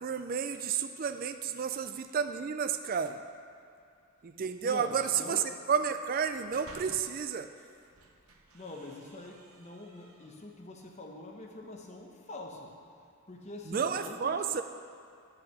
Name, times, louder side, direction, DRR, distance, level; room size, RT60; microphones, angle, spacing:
voice 1, 0.0-3.2 4.2-7.5 13.7-14.6, right 7 dB, 40° right, 9 dB, 0.3 m, -31 dB
voice 2, 4.6-5.6 7.6-7.7 8.5-12.7 13.3-14.4, left 2 dB, 30° left, 0 dB, 0.9 m, -45 dB
sound 1, 6.1-7.3 7.8-10.6, right 2 dB, 75° right, 0.9 m, -55 dB
10.0 x 5.9 x 6.4 m, 2.4 s
head